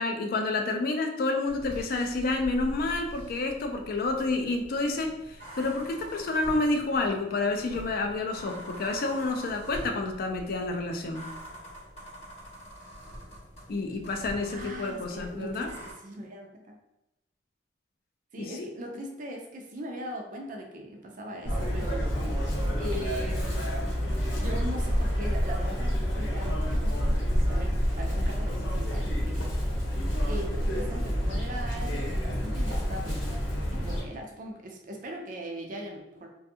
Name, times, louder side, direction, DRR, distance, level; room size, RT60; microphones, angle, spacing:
voice 1, 0.0-11.3 13.7-15.7 18.4-18.7, left 3 dB, 55° left, 4 dB, 0.4 m, -29 dB
sound 1, 1.5-15.9, equal, 40° left, 1.5 m, -45 dB
voice 2, 14.5-16.8 18.3-22.1 22.8-23.6 24.4-29.5 30.3-33.2 33.7-36.3, equal, 45° right, 2 dB, 0.4 m, -40 dB
Chirp tweet, 21.5-34.0, equal, 85° left, 0.8 m, -28 dB
2.5 x 2.3 x 2.6 m, 0.90 s
head